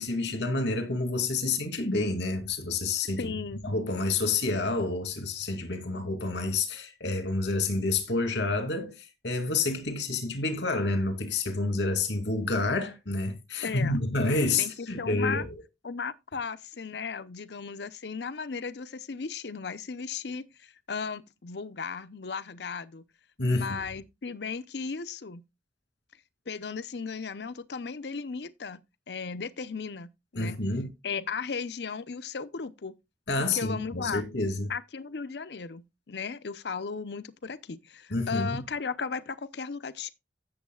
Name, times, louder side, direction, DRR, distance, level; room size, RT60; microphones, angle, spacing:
voice 1, 0.0-3.3 3.6-9.0 9.2-15.5 23.4-23.8 30.4-30.9 33.3-34.7 38.1-38.6, left 3 dB, 90° left, 2.5 m, -29 dB
voice 2, 3.2-3.6 13.6-14.0 14.4-15.4 15.8-23.0 23.5-25.4 26.5-28.8 29.1-30.6 31.0-33.0 33.5-34.2 34.7-40.1, left 5 dB, 70° left, 0.7 m, -36 dB
15.5 x 7.1 x 2.3 m
head